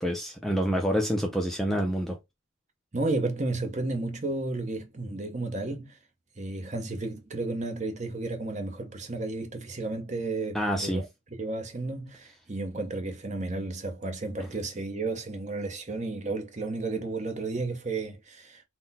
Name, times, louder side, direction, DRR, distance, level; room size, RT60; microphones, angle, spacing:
voice 1, 0.0-2.2 10.5-11.0, equal, ahead, 0.4 m, -27 dB
voice 2, 2.9-6.0 6.4-11.1 11.4-18.6, right 2 dB, 30° right, 0.7 m, -32 dB
3.9 x 2.1 x 4.0 m
head